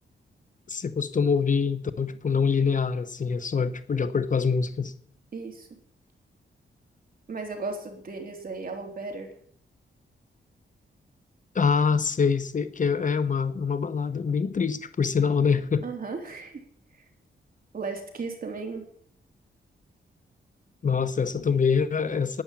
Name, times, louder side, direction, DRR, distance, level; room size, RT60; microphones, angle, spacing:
voice 1, 0.7-4.9 11.5-15.9 20.8-22.4, left 5 dB, 40° left, 12 dB, 0.8 m, -25 dB
voice 2, 5.3-5.7 7.3-9.3 15.8-16.6 17.7-18.9, right 4 dB, 45° right, 3 dB, 3.5 m, -35 dB
12.0 x 9.7 x 8.5 m, 0.63 s
wide cardioid pair, 130°, 20 cm